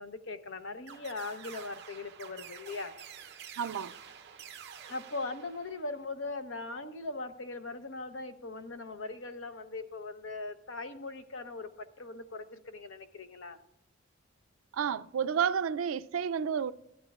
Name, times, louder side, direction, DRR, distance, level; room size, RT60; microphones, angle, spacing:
voice 1, 0.0-3.0 4.9-13.6, left 3 dB, 70° left, 0.8 m, -40 dB
sound 1, 0.9-6.0, right 7 dB, 50° right, 0.7 m, -49 dB
voice 2, 3.6-3.9 14.7-16.7, right 7 dB, 80° right, 0.4 m, -30 dB
15.5 x 11.0 x 2.4 m
head